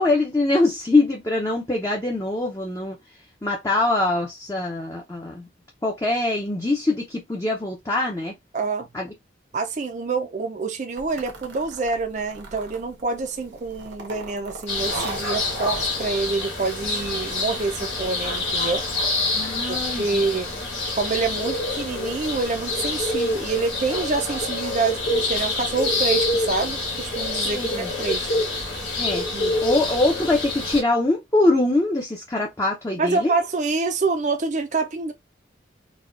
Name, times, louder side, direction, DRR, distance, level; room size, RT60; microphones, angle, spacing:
voice 1, 0.0-3.0 3.4-5.4 5.8-8.3 8.9-9.1 19.3-20.2 27.5-27.9 29.0-29.2 29.6-33.3, left 2 dB, 15° left, 0.5 m, -23 dB
voice 2, 8.5-8.9 9.5-18.8 19.7-20.5 21.0-28.3 29.3-29.6 33.0-35.1, right 4 dB, 40° right, 0.4 m, -26 dB
sound 1, 11.0-16.2, right 2 dB, 80° right, 0.9 m, -38 dB
sound 2, 14.7-30.8, left 2 dB, 90° left, 1.8 m, -26 dB
4.0 x 2.2 x 2.4 m
head